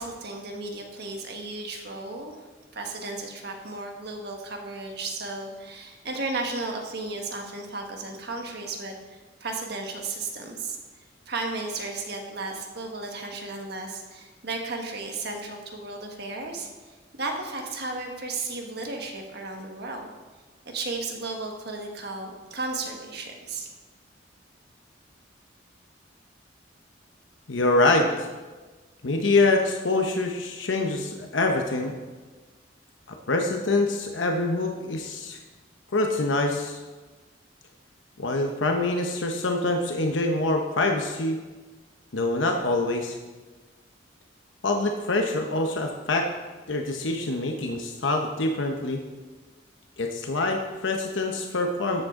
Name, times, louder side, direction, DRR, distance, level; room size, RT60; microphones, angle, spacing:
voice 1, 0.0-2.4 2.7-10.8 11.3-16.7 17.1-20.1 20.6-23.7, right 3 dB, 60° right, 2 dB, 1.5 m, -34 dB
voice 2, 27.5-28.3 29.0-31.9 33.3-35.4 35.9-36.8 38.2-41.4 42.1-43.2 44.6-46.3 46.7-49.0 50.0-52.1, left 2 dB, 80° left, 3 dB, 0.9 m, -25 dB
13.5 x 7.8 x 3.7 m, 1.3 s
head